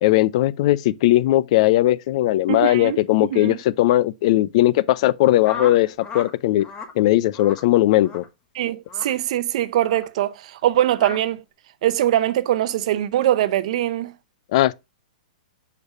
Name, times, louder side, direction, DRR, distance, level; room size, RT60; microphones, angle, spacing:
voice 1, 0.0-6.7 7.0-8.2 14.5-14.7, left 15 dB, 50° left, 0.4 m, -18 dB
voice 2, 2.5-3.0 3.3-3.6 8.5-11.4 11.8-14.1, right 12 dB, 60° right, 0.6 m, -22 dB
sound 1, 5.4-6.3 6.6-6.9 7.3-7.6 8.0-8.3 8.9-9.1 9.8-10.1 10.9-11.2, left 4 dB, 20° left, 1.2 m, -35 dB
7.9 x 5.2 x 2.5 m
hypercardioid pair, 130°, 4 cm